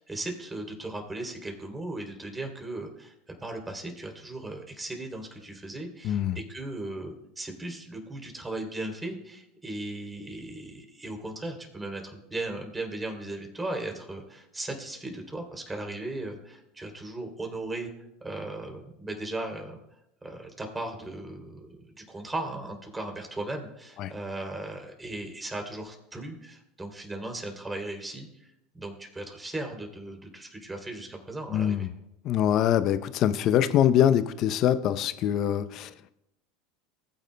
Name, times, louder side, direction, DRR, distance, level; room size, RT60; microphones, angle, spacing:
voice 1, 0.0-3.1 3.4-17.9 18.2-19.8 20.2-28.5 28.7-31.9, right 2 dB, 15° right, 3 dB, 3.0 m, -37 dB
voice 2, 6.0-6.4 24.0-24.1 31.5-31.9 32.2-35.9, left 10 dB, 50° left, 13 dB, 0.6 m, -24 dB
20.0 x 8.8 x 2.2 m, 0.83 s
hypercardioid pair, 85°, 0 cm